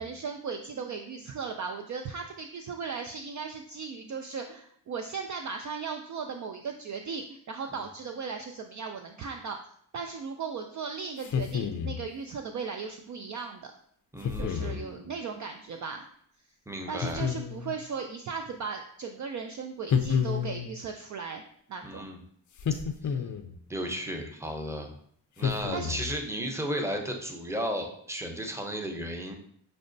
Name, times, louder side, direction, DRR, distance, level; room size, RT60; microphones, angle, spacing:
voice 1, 0.0-13.7 14.4-16.0 16.9-21.4 21.7-22.1 25.7-26.0, right 5 dB, 40° right, 5 dB, 0.4 m, -37 dB
sound 1, 11.2-12.1 14.2-14.8 17.0-17.8 19.9-20.8 22.6-23.6 25.4-26.2, left 7 dB, 40° left, 0.5 m, -30 dB
voice 2, 14.1-15.1 16.7-17.2 21.8-22.2 23.0-23.1 23.7-24.9 25.4-29.3, equal, 5° right, 3 dB, 0.7 m, -34 dB
6.0 x 2.1 x 2.6 m, 0.65 s
supercardioid pair, 45°, 46 cm